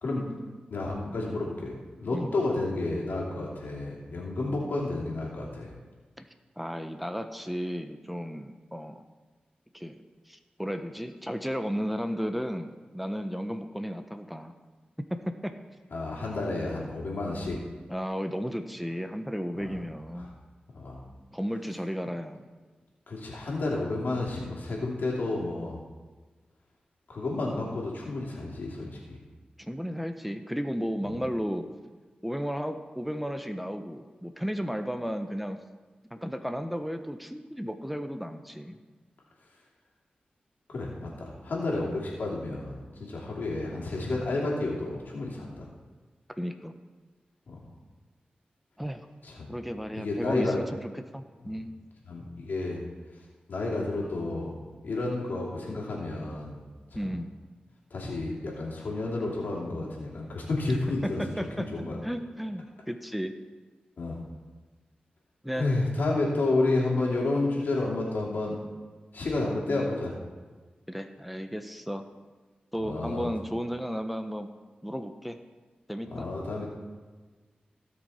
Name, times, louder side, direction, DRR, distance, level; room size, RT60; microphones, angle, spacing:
voice 1, 0.7-5.7 15.9-17.6 19.6-19.7 20.2-20.3 20.7-21.0 23.1-25.8 27.1-29.2 40.7-45.6 47.5-47.6 49.2-49.5 49.9-50.6 52.1-52.8 53.5-54.5 54.8-56.6 57.0-57.1 57.9-61.2 61.6-62.0 64.0-64.2 65.5-68.6 69.1-70.1 72.8-73.3 76.1-76.7, left 2 dB, 80° left, -3 dB, 3.0 m, -31 dB
voice 2, 6.6-9.0 9.7-14.5 15.0-15.6 17.9-20.3 21.3-22.4 29.6-31.7 32.2-35.6 36.1-38.8 46.4-46.7 48.8-49.1 49.5-50.8 51.1-51.7 56.9-57.3 61.0-61.7 62.0-63.3 65.4-65.7 70.9-72.0 72.7-74.5 74.8-75.4 75.9-76.3, equal, ahead, 7 dB, 0.9 m, -34 dB
17.0 x 6.1 x 4.3 m, 1.4 s
cardioid pair, 50°, 3 cm